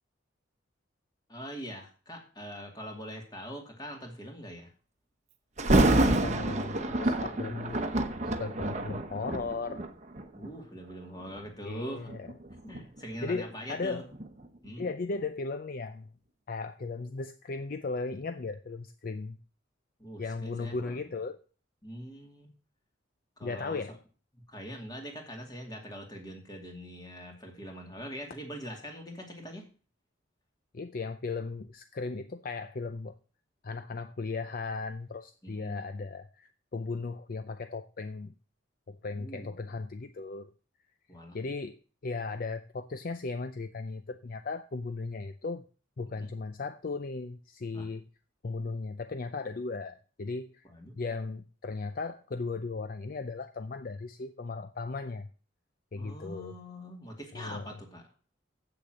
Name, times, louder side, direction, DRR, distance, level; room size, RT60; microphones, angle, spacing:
voice 1, 1.3-4.7 7.3-7.8 10.3-12.1 12.6-14.0 14.6-14.8 20.0-21.1 21.8-22.5 23.4-23.8 24.3-29.7 35.4-35.9 39.1-39.5 41.1-41.4 46.2-46.3 47.7-47.9 50.6-51.0 55.9-58.0, equal, 20° left, 2.5 m, -43 dB
Thunder, 5.6-10.6 11.2-11.4 12.1-14.9 15.2-15.3, right 2 dB, 40° right, 1.0 m, -28 dB
voice 2, 6.0-7.8 8.4-9.8 11.6-12.3 13.2-14.1 14.8-16.1 16.5-19.4 20.2-21.4 23.4-24.0 30.7-33.1 33.6-38.3 38.9-40.5 41.3-45.6 46.0-48.1 48.4-50.7 51.0-55.3 55.9-56.6 57.3-57.7, left 3 dB, 50° left, 0.5 m, -36 dB
7.8 x 6.9 x 7.8 m
head